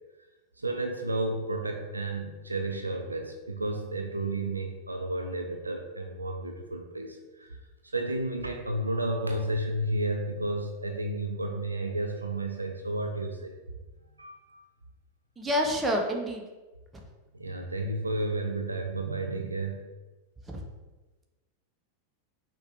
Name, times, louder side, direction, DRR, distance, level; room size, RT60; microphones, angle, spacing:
voice 1, 0.6-7.6 7.8-13.5 14.2-14.7 17.3-19.9, right 2 dB, 85° right, 3 dB, 0.4 m, -32 dB
voice 2, 15.4-16.4 16.9-17.0 20.5-20.6, equal, 15° right, 1 dB, 0.7 m, -28 dB
4.8 x 2.2 x 3.0 m, 1.2 s
figure-of-eight pair, 90°, 0 cm